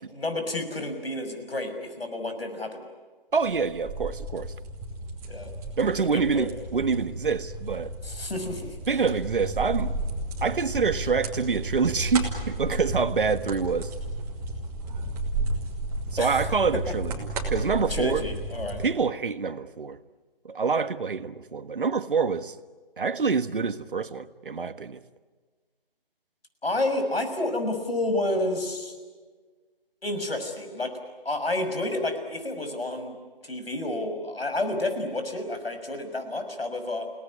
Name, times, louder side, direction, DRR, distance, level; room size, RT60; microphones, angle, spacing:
voice 1, 0.1-2.8 5.3-5.5 6.0-6.5 8.0-8.8 16.2-16.5 17.9-18.8 26.6-28.9 30.0-30.9 31.2-33.2 33.4-37.1, left 2 dB, 85° left, 6.2 m, -30 dB
voice 2, 3.3-4.5 5.8-7.9 8.9-10.0 10.4-13.9 16.1-18.2 18.8-20.0 20.4-22.6 23.0-25.0, right 5 dB, 60° right, 1.5 m, -26 dB
sound 1, 3.4-18.9, right 2 dB, 10° right, 2.5 m, -33 dB
29.5 x 18.5 x 9.9 m
figure-of-eight pair, 160°, 29 cm